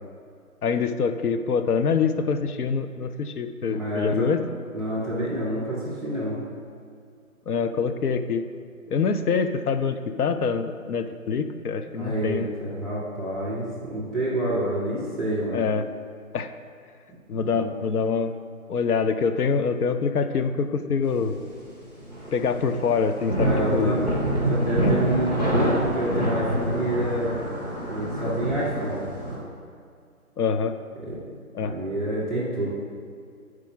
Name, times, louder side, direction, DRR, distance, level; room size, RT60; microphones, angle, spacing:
voice 1, 0.6-4.5 7.5-8.5 8.9-12.5 15.5-15.9 16.3-16.5 17.3-18.4 18.7-21.4 22.3-24.1 24.8-24.9 30.4-30.7 31.5-31.7, left 5 dB, 85° left, 9 dB, 0.6 m, -25 dB
voice 2, 3.7-4.3 4.7-6.4 11.9-15.6 17.6-17.7 23.4-24.2 24.4-27.4 27.9-29.1 31.0-31.2 31.6-32.7, right 1 dB, ahead, -10 dB, 0.6 m, -28 dB
sound 1, 21.2-21.6 22.0-29.4, right 1 dB, 25° left, 1.5 m, -26 dB
5.0 x 4.7 x 5.7 m, 2.2 s
figure-of-eight pair, 175°, 44 cm